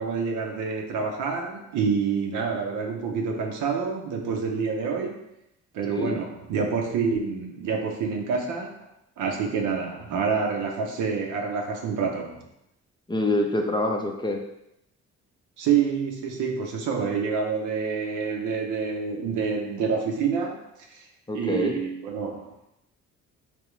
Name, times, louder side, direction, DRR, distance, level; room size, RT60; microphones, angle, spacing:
voice 1, 0.0-5.2 5.7-8.8 9.2-12.4 15.6-20.6 20.9-21.1 21.3-22.5, right 5 dB, 85° right, 2 dB, 0.7 m, -27 dB
voice 2, 5.9-6.2 13.1-14.4 21.3-21.7, left 1 dB, 15° left, 2 dB, 0.4 m, -26 dB
3.4 x 2.9 x 3.1 m, 0.82 s
cardioid pair, 90°, 30 cm